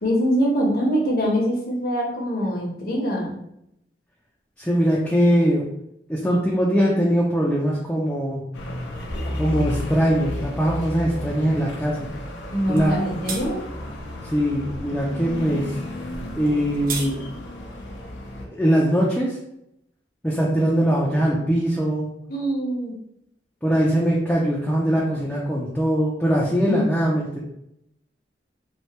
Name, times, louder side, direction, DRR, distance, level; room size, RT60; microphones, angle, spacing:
voice 1, 0.0-3.3 12.5-13.6 22.3-22.9 26.7-26.8, equal, 55° left, -2 dB, 0.8 m, -23 dB
voice 2, 4.6-5.7 6.1-8.5 9.3-12.1 12.7-13.0 14.2-15.8 16.4-17.2 18.4-19.4 20.2-22.1 23.6-27.4, equal, 5° left, -5 dB, 0.4 m, -21 dB
sound 1, 8.5-18.5, left 1 dB, 90° left, 0.5 m, -33 dB
sound 2, 12.8-12.9 13.3-13.4 16.4-17.1, right 4 dB, 50° right, 0.4 m, -31 dB
3.2 x 2.2 x 2.8 m, 0.79 s
head